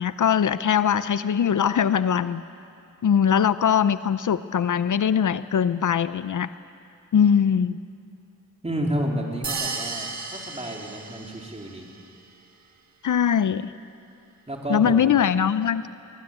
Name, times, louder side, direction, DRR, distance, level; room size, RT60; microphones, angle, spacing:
voice 1, 0.0-2.4 3.0-6.5 7.1-7.8 13.0-13.7 14.7-15.9, left 8 dB, 70° left, 14 dB, 0.6 m, -21 dB
voice 2, 8.6-11.9 14.5-15.0, right 1 dB, 20° right, 0 dB, 3.5 m, -30 dB
sound 1, 9.4-11.7, right 4 dB, 60° right, 1.8 m, -33 dB
23.5 x 20.0 x 9.0 m, 2.6 s
wide cardioid pair, 95°, 32 cm